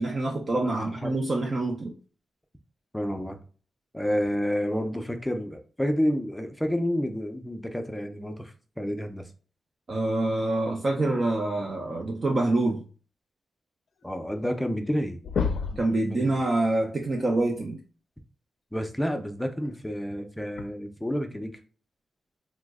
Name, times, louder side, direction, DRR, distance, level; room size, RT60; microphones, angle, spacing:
voice 1, 0.0-1.9 9.9-12.8 15.8-17.8, right 2 dB, 45° right, 0 dB, 0.5 m, -26 dB
voice 2, 0.6-1.2 2.9-3.4 3.9-9.3 14.0-15.2 15.7-16.3 18.7-21.5, equal, 10° left, 6 dB, 0.5 m, -30 dB
sound 1, 14.8-15.0 15.2-15.9 17.6-17.7 19.6-19.7 20.6-20.7, left 5 dB, 70° left, 0.4 m, -28 dB
3.0 x 2.1 x 3.5 m, 0.40 s
cardioid pair, 85°, 0 cm